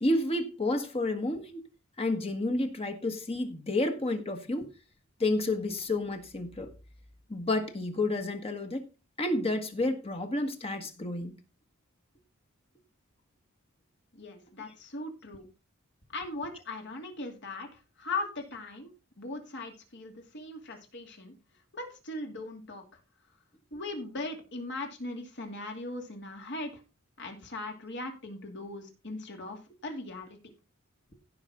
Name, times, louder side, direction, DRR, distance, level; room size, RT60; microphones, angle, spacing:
voice 1, 0.0-1.6 2.0-4.7 5.2-6.7 7.3-8.8 9.2-11.4, left 2 dB, 30° left, 1.5 m, -30 dB
voice 2, 14.1-15.5 16.1-18.9 19.2-21.3 21.7-22.8 23.7-26.8 27.2-30.4, left 2 dB, 55° left, 2.7 m, -39 dB
16.0 x 5.7 x 3.7 m
head